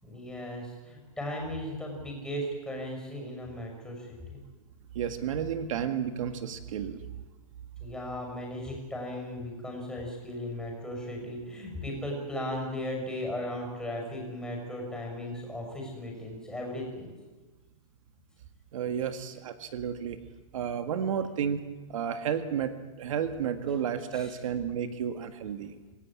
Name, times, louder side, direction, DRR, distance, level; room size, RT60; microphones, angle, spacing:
voice 1, 0.0-4.2 7.8-17.1 23.7-23.8 24.1-24.3, left 1 dB, 5° left, 1 dB, 6.2 m, -36 dB
voice 2, 5.0-7.1 18.7-20.2 20.5-21.6 21.9-25.8, right 8 dB, 70° right, 9 dB, 1.8 m, -32 dB
26.5 x 15.5 x 8.7 m, 1.2 s
hypercardioid pair, 155°, 18 cm